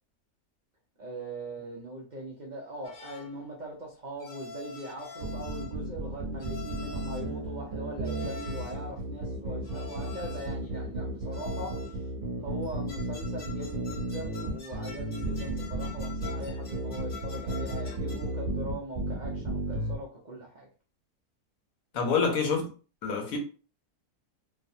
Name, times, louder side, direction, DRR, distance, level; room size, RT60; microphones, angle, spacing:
voice 1, 1.0-12.1 12.4-20.7 21.9-22.1, right 1 dB, 75° right, 0.4 m, -41 dB
sound 1, 2.8-3.4 4.2-5.8 6.4-7.3 8.0-8.9 9.6-10.6 11.3-12.0 12.6-18.4, left 5 dB, 45° left, 0.5 m, -46 dB
sound 2, 5.2-20.0, right 1 dB, 40° right, 1.0 m, -34 dB
voice 2, 21.9-22.6 23.0-23.4, left 5 dB, 70° left, 1.2 m, -26 dB
3.2 x 2.0 x 2.6 m
omnidirectional pair, 1.6 m